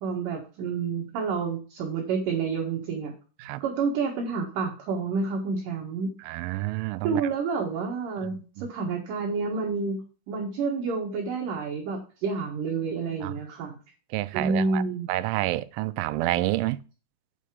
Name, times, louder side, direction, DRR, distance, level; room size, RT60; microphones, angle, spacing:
voice 1, 0.0-3.1 3.6-6.1 7.0-13.8 14.3-15.1, right 4 dB, 60° right, 2.5 m, -29 dB
voice 2, 6.3-7.2 8.6-8.7 13.2-13.3 14.1-14.8 15.1-16.8, right 17 dB, 85° right, 3.0 m, -28 dB
8.5 x 6.7 x 4.9 m
omnidirectional pair, 5.5 m